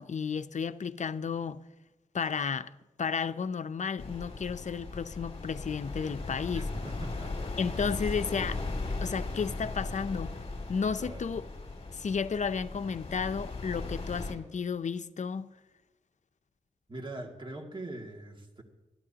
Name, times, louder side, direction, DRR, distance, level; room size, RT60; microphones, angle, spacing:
voice 1, 0.0-1.6 2.1-2.7 3.0-6.7 7.6-8.6 9.0-10.4 10.7-11.5 11.9-15.5, left 6 dB, 60° left, 0.6 m, -32 dB
sound 1, 4.0-14.3, left 3 dB, 45° left, 2.7 m, -37 dB
voice 2, 6.5-7.5 11.0-11.4 16.9-18.6, right 2 dB, 35° right, 2.3 m, -42 dB
26.0 x 12.0 x 2.9 m
cardioid pair, 70°, 14 cm